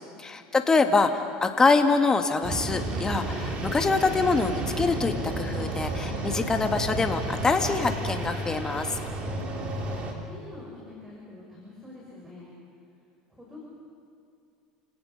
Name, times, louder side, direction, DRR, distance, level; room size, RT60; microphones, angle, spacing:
voice 1, 0.2-9.0, left 4 dB, 20° left, 6 dB, 1.9 m, -25 dB
sound 1, 2.4-10.1, right 2 dB, 40° right, 3.2 m, -31 dB
voice 2, 9.1-9.7 10.2-12.5 13.3-13.6, left 2 dB, 15° right, -4 dB, 5.8 m, -46 dB
29.0 x 18.0 x 5.5 m, 2.5 s
hypercardioid pair, 90°, 3 cm